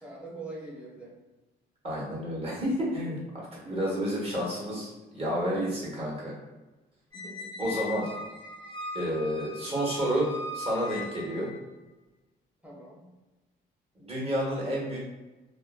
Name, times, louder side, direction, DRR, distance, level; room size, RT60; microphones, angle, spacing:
voice 1, 0.0-1.1 3.6-3.9 5.3-5.7 7.1-7.6 9.6-9.8 12.6-13.1, right 2 dB, 5° right, -3 dB, 0.8 m, -43 dB
voice 2, 1.8-6.3 7.6-8.1 8.9-11.5 14.0-15.1, equal, 30° right, -5 dB, 1.2 m, -30 dB
Squeak, 7.1-11.6, left 2 dB, 20° left, 0.4 m, -39 dB
2.8 x 2.1 x 2.4 m, 1.1 s
cardioid pair, 90°, 20 cm